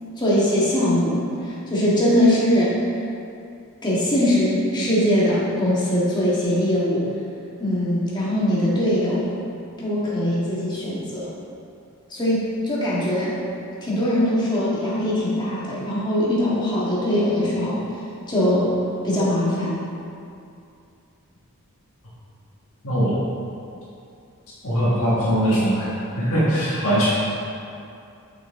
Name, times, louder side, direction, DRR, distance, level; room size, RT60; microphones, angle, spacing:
voice 1, 0.2-2.7 3.8-7.0 7.6-9.3 9.8-11.3 12.1-13.4 13.8-17.8 18.3-18.7 19.0-19.8, left 1 dB, 20° left, -8 dB, 1.7 m, -21 dB
voice 2, 22.8-23.1 24.6-25.9 26.1-27.1, equal, 70° left, -10 dB, 1.6 m, -21 dB
6.5 x 5.9 x 3.7 m, 2.6 s
head